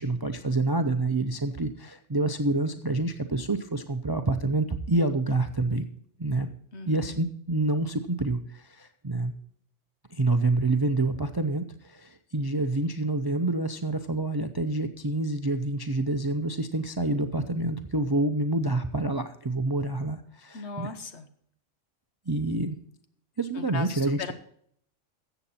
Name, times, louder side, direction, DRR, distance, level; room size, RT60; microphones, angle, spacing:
voice 1, 0.0-5.8 6.2-6.5 6.9-8.4 8.8-9.3 10.1-20.9 22.3-22.8 23.4-24.3, right 2 dB, 30° right, 9 dB, 0.4 m, -27 dB
voice 2, 6.7-7.2 20.5-21.3 23.5-24.3, left 4 dB, 65° left, 9 dB, 1.3 m, -38 dB
14.0 x 8.0 x 4.2 m, 0.65 s
omnidirectional pair, 1.3 m